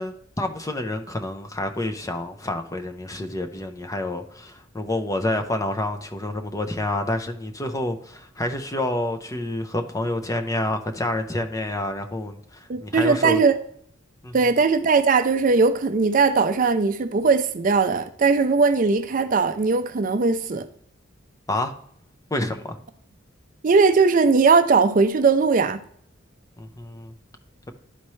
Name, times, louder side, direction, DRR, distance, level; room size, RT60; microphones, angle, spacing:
voice 1, 0.0-13.4 14.2-14.3 21.5-21.7 22.3-22.8 26.6-27.1, left 1 dB, 15° left, 0.6 m, -28 dB
voice 2, 12.7-13.6 14.3-20.7 23.6-25.8, right 4 dB, 40° right, 0.5 m, -19 dB
11.5 x 4.3 x 3.1 m
head